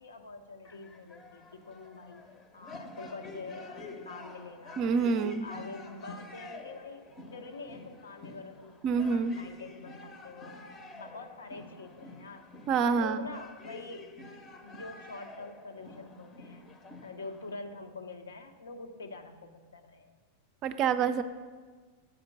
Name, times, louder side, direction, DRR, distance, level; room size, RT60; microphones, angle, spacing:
voice 1, 0.0-2.2 2.5-4.8 5.1-10.6 10.9-12.4 12.8-14.1 14.6-16.6 17.0-20.1, left 3 dB, 70° left, 6 dB, 0.6 m, -45 dB
sound 1, 0.6-17.5, left 2 dB, 25° left, 0.7 m, -49 dB
voice 2, 4.8-5.5 8.8-9.4 12.7-13.3 20.6-21.2, right 5 dB, 35° right, 11 dB, 0.4 m, -27 dB
7.9 x 5.0 x 6.0 m, 1.5 s
figure-of-eight pair, 90°, 0 cm